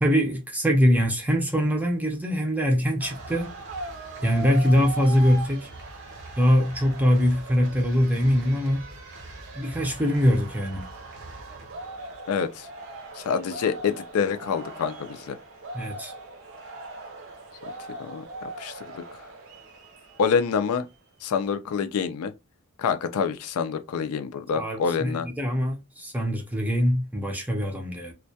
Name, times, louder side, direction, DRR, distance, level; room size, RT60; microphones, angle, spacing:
voice 1, 0.0-3.5 4.2-5.7 6.4-8.9 9.6-10.8 15.7-16.1 24.5-28.1, equal, 5° right, 0.5 m, -23 dB
sound 1, 3.0-20.8, right 2 dB, 60° right, 0.6 m, -40 dB
voice 2, 12.3-12.7 13.2-15.4 17.6-17.7 18.0-19.0 20.2-20.9 21.2-22.3 22.8-25.3, left 6 dB, 75° left, 0.3 m, -27 dB
2.2 x 2.1 x 2.6 m
head